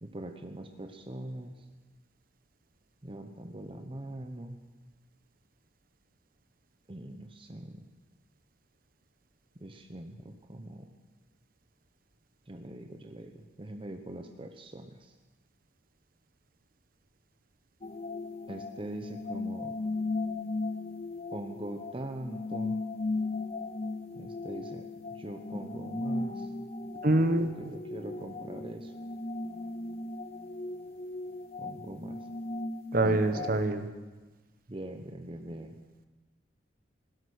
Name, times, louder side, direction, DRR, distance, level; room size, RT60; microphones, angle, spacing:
voice 1, 0.0-1.6 3.0-4.6 6.9-7.8 9.6-10.9 12.5-15.1 18.5-19.7 21.3-22.8 24.2-24.9 25.2-26.5 27.4-28.9 31.6-32.2 33.0-33.6 34.7-35.7, right 1 dB, 30° right, 5 dB, 0.9 m, -42 dB
sound 1, 17.8-33.7, left 2 dB, 35° left, 0.6 m, -37 dB
voice 2, 27.0-27.5 32.9-33.9, right 2 dB, 50° right, 9 dB, 1.1 m, -25 dB
17.0 x 12.5 x 6.4 m, 1.2 s
head